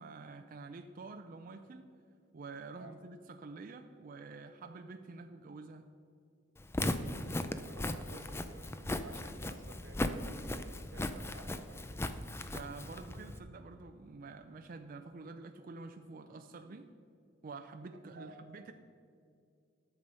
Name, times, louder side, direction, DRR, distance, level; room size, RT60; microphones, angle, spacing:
voice 1, 0.0-1.9 2.3-5.9 12.5-16.9 17.4-18.7, right 3 dB, 45° right, 6 dB, 0.4 m, -48 dB
Walk footsteps, 6.6-13.4, left 1 dB, 15° left, 0.4 m, -37 dB
voice 2, 6.8-10.3 10.9-11.9 17.9-18.5, right 2 dB, 90° right, 6 dB, 1.2 m, -54 dB
11.0 x 7.0 x 5.3 m, 2.4 s
head